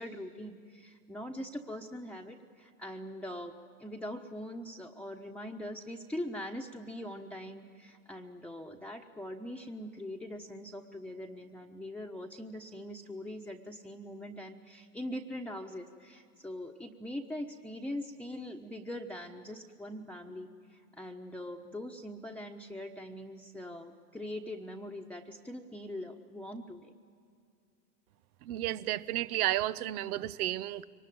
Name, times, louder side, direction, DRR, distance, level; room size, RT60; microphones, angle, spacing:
voice 1, 0.0-3.5 3.8-26.9, left 1 dB, 5° left, 2 dB, 1.1 m, -42 dB
voice 2, 28.4-30.8, right 14 dB, 75° right, 16 dB, 0.9 m, -32 dB
24.0 x 19.5 x 9.3 m, 2.4 s
hypercardioid pair, 90°, 45 cm